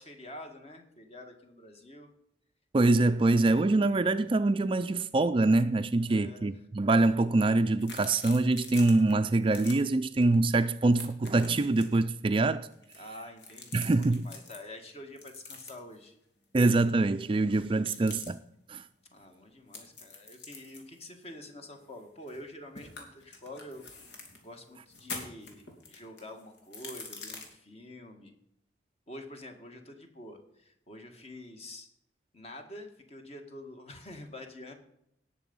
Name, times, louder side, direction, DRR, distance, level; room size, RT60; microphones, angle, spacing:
voice 1, 0.0-2.1 6.1-6.5 13.0-16.2 19.1-28.3 29.1-31.9 32.3-34.7, left 1 dB, 35° left, 1.9 m, -47 dB
voice 2, 2.7-12.7 13.7-14.3 16.5-18.4 18.7-18.8, right 2 dB, 30° right, 0.4 m, -25 dB
sound 1, 7.8-9.1 9.4-9.8 10.2-10.4 10.6-12.0 12.7-14.6 15.2-16.0 17.8-18.3 19.7-22.5 22.8-24.4 24.9-27.4, left 3 dB, 90° left, 2.8 m, -45 dB
18.0 x 6.8 x 5.4 m
head